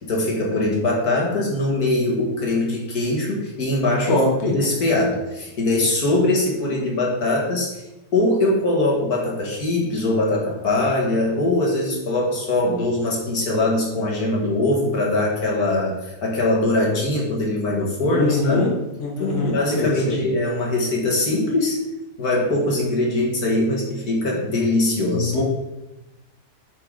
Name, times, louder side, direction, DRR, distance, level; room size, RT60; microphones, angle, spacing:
voice 1, 0.0-7.8 8.1-18.7 19.2-21.8 22.2-25.3, left 2 dB, 65° left, -2 dB, 2.0 m, -22 dB
voice 2, 4.1-4.5 18.0-18.7 19.0-20.2 25.1-25.4, left 2 dB, 45° left, 0 dB, 1.4 m, -22 dB
7.7 x 4.9 x 4.8 m, 0.98 s
omnidirectional pair, 1.8 m